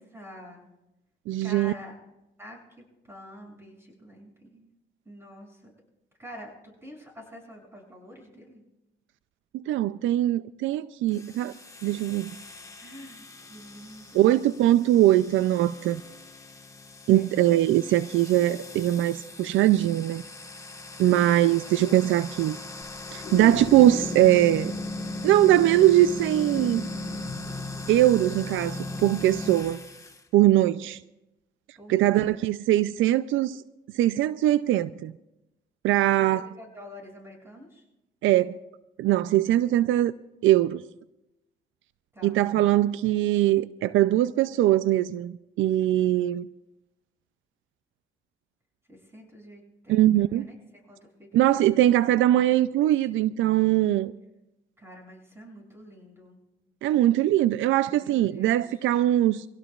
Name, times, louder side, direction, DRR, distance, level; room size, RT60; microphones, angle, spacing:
voice 1, 0.1-0.6 1.4-1.9 2.4-4.7 5.0-5.7 6.2-8.6 12.8-15.0 17.1-17.5 18.0-18.1 21.8-22.0 31.7-32.5 36.2-37.8 42.1-42.4 48.9-50.6 50.8-52.4 54.8-56.4 57.9-58.7, equal, 10° right, 6.8 m, -47 dB
voice 2, 1.3-1.7 9.5-11.5 11.8-12.3 14.1-16.0 17.1-20.2 21.0-22.6 23.1-24.8 25.2-26.9 27.9-29.8 30.3-31.0 31.9-33.6 33.9-35.1 35.8-36.5 38.2-38.6 39.0-40.1 40.4-40.8 42.2-46.5 49.9-50.4 51.3-54.1 56.8-59.4, right 14 dB, 80° right, 0.4 m, -21 dB
sound 1, 11.1-30.2, left 2 dB, 15° left, 1.4 m, -38 dB
sound 2, 22.8-24.3 24.8-24.9 25.1-25.2 26.3-27.2 27.9-28.1, left 7 dB, 55° left, 1.3 m, -39 dB
25.0 x 17.0 x 2.4 m
cardioid pair, 90°, 20 cm